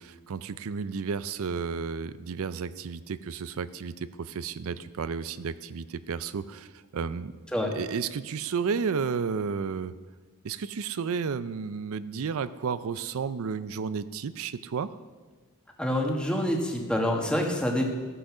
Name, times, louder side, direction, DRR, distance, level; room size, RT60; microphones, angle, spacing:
voice 1, 0.0-7.3 7.7-9.9 10.4-14.9, right 6 dB, 70° right, 15 dB, 0.4 m, -32 dB
voice 2, 15.8-17.9, left 1 dB, 5° left, 0 dB, 1.5 m, -26 dB
14.0 x 7.9 x 6.1 m, 1.4 s
head